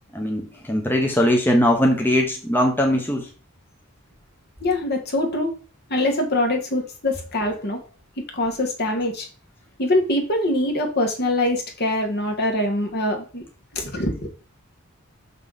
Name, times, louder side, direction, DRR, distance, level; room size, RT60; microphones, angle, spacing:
voice 1, 0.1-3.3, left 1 dB, 10° left, 1.0 m, -20 dB
voice 2, 4.6-5.5 5.9-7.8 8.2-9.3 9.8-13.4 13.7-14.3, left 1 dB, 50° left, 1.6 m, -23 dB
6.4 x 5.5 x 4.1 m
head